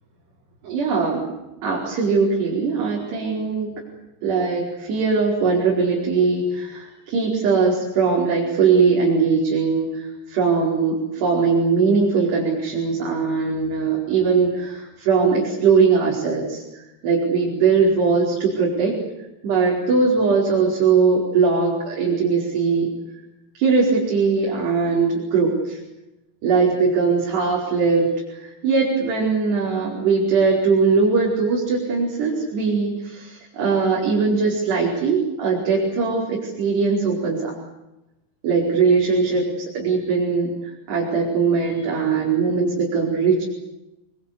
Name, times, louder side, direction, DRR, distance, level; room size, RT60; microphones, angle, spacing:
voice 1, 0.6-1.3 1.6-3.7 4.2-18.9 19.4-22.9 23.5-25.8 26.4-37.6 38.4-43.4, right 5 dB, 65° right, -3 dB, 6.9 m, -20 dB
29.0 x 23.0 x 8.5 m, 0.97 s
omnidirectional pair, 5.1 m